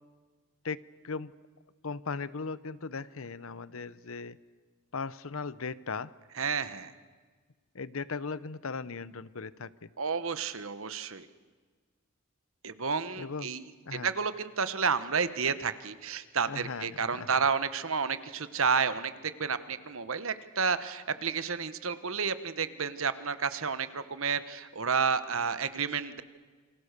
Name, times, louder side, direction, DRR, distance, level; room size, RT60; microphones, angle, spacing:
voice 1, 0.6-1.3 1.8-4.4 4.9-6.1 7.7-9.9 13.2-13.5 13.9-14.1 16.5-17.3, left 4 dB, 70° left, 17 dB, 0.8 m, -38 dB
voice 2, 6.4-6.9 10.0-11.3 12.6-13.6 14.0-26.2, right 5 dB, 65° right, 13 dB, 1.3 m, -31 dB
28.5 x 25.0 x 6.7 m, 1.4 s
head